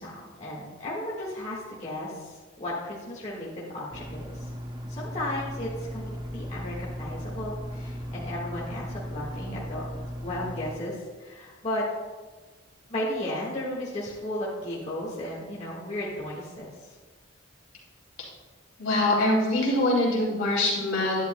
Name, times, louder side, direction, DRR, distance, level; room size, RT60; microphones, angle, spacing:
voice 1, 0.0-4.5 4.9-9.8 10.2-11.8 12.9-17.0, left 1 dB, 35° left, -6 dB, 1.6 m, -34 dB
sound 1, 3.9-10.7, equal, 20° right, 0.6 m, -37 dB
voice 2, 18.8-21.2, left 1 dB, 70° left, -4 dB, 2.9 m, -24 dB
11.0 x 10.5 x 2.2 m, 1.3 s
head